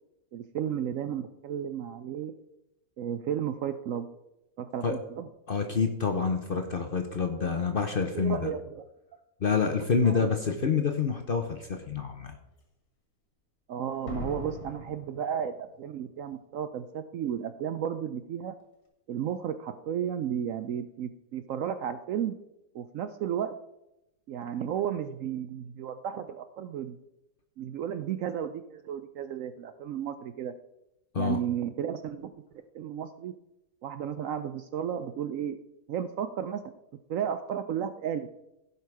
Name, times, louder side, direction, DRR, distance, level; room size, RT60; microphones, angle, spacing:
voice 1, 0.3-2.3 3.0-4.1 4.6-5.3 8.1-8.8 10.0-10.3 13.7-18.6 19.1-22.3 22.7-23.5 24.3-27.0 27.6-30.5 31.2-32.3 32.7-33.3 33.8-35.6 35.9-36.6 37.1-38.4, right 9 dB, 70° right, 10 dB, 0.8 m, -33 dB
voice 2, 5.5-8.5 9.4-12.4 31.1-31.4, left 5 dB, 45° left, 5 dB, 0.7 m, -27 dB
Slam, 10.9-11.0 11.6-12.0 14.1-16.2, left 2 dB, 65° left, 2.6 m, -42 dB
15.5 x 5.5 x 4.7 m, 0.89 s
omnidirectional pair, 1.7 m